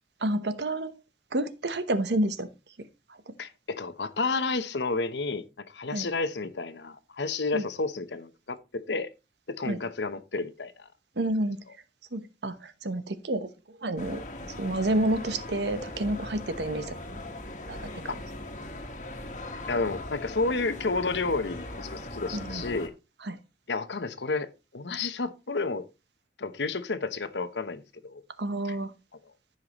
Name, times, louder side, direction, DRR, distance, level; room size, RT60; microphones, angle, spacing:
voice 1, 0.2-0.9 1.3-2.5 5.9-6.1 7.5-7.7 9.7-9.8 11.2-11.6 12.1-13.5 13.8-14.2 14.6-17.2 17.7-18.1 22.3-22.6 23.2-23.4 28.4-28.9, right 1 dB, 75° right, 1.0 m, -29 dB
voice 2, 3.4-9.1 9.5-10.9 19.7-22.9 23.7-25.9 26.4-28.2, left 3 dB, 80° left, 0.9 m, -31 dB
sound 1, 14.0-22.9, left 1 dB, 45° left, 1.5 m, -39 dB
14.5 x 5.7 x 3.0 m
head